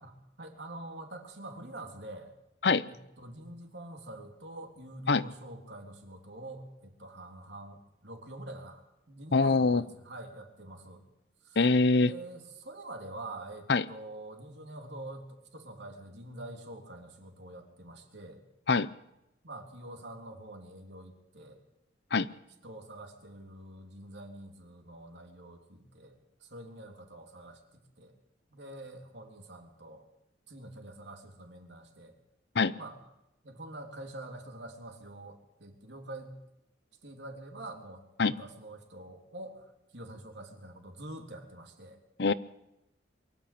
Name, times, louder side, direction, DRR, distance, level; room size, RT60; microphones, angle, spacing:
voice 1, 0.0-2.3 2.8-11.0 11.4-11.6 12.0-18.4 19.4-21.6 22.6-28.2 28.5-30.0 30.5-32.1 32.8-32.9 33.4-36.4 37.0-38.0 38.3-39.7 39.9-42.0, right 1 dB, 65° right, 3 dB, 3.4 m, -46 dB
voice 2, 9.3-9.8 11.6-12.1 13.7-13.8 18.7-18.9 22.1-22.3 32.5-32.7 38.2-38.3 42.2-42.3, left 4 dB, 60° left, 16 dB, 0.7 m, -24 dB
23.5 x 13.5 x 8.6 m, 0.88 s
head